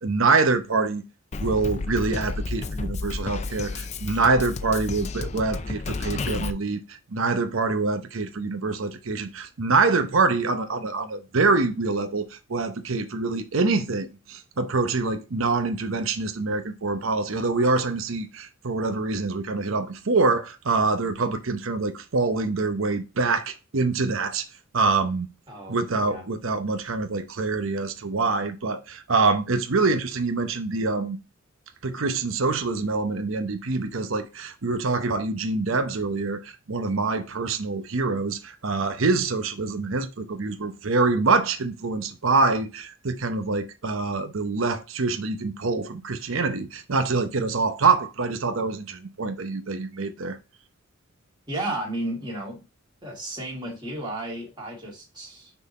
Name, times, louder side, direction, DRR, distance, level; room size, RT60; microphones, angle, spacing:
voice 1, 0.0-1.0 1.4-24.4 24.7-25.3 25.7-31.2 31.8-50.4, right 3 dB, 75° right, 0.8 m, -25 dB
Drum kit, 1.3-6.5, left 3 dB, 35° left, 0.4 m, -31 dB
voice 2, 25.5-26.3 51.5-52.6 53.0-55.5, right 1 dB, 20° right, 1.9 m, -33 dB
6.0 x 3.9 x 4.1 m
head